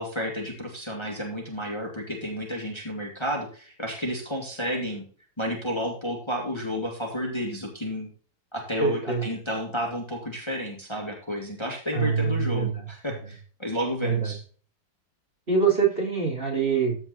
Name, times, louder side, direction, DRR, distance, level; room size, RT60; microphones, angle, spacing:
voice 1, 0.0-5.0 5.4-8.1 8.5-14.4, equal, 15° left, 0 dB, 2.2 m, -31 dB
voice 2, 8.8-9.2 11.9-12.9 14.0-14.3 15.5-17.0, right 5 dB, 35° right, -1 dB, 3.3 m, -24 dB
14.0 x 4.8 x 4.1 m, 0.41 s
omnidirectional pair, 1.8 m